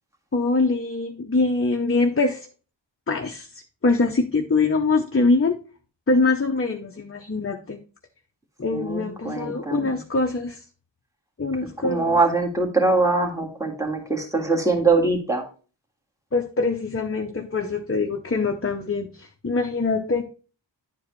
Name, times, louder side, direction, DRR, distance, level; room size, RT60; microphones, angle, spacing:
voice 1, 0.3-2.5 3.1-5.6 6.1-7.8 8.6-10.6 11.4-12.2 16.3-20.2, left 3 dB, 30° left, 4 dB, 0.7 m, -23 dB
voice 2, 8.7-10.0 11.8-15.4, right 3 dB, 5° right, 1 dB, 1.7 m, -23 dB
10.5 x 4.7 x 3.1 m, 0.37 s
wide cardioid pair, 45°, 46 cm